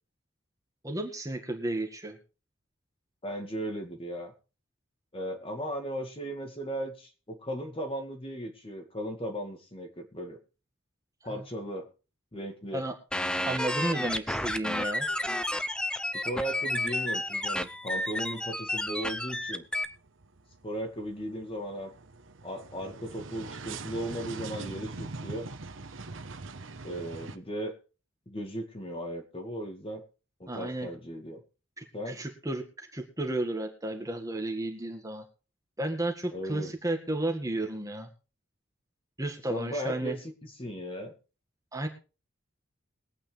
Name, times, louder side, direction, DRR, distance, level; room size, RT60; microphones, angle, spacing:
voice 1, 0.8-2.2 11.3-11.4 12.7-12.9 13.4-15.1 30.5-30.9 31.8-35.2 35.8-38.1 39.2-40.1 41.7-41.9, right 1 dB, 15° right, 3 dB, 1.8 m, -33 dB
voice 2, 3.2-4.3 5.1-10.4 11.2-11.9 12.3-12.8 16.1-19.6 20.6-21.9 22.4-25.5 26.8-27.8 28.3-30.0 30.4-31.4 31.9-32.2 36.3-36.7 39.5-41.1, equal, 30° left, 4 dB, 2.0 m, -36 dB
sound 1, 13.1-19.8, left 1 dB, 5° left, 0.6 m, -31 dB
sound 2, 17.2-17.8 18.2-27.4, right 3 dB, 75° right, 1.1 m, -43 dB
22.0 x 8.7 x 3.4 m, 0.34 s
head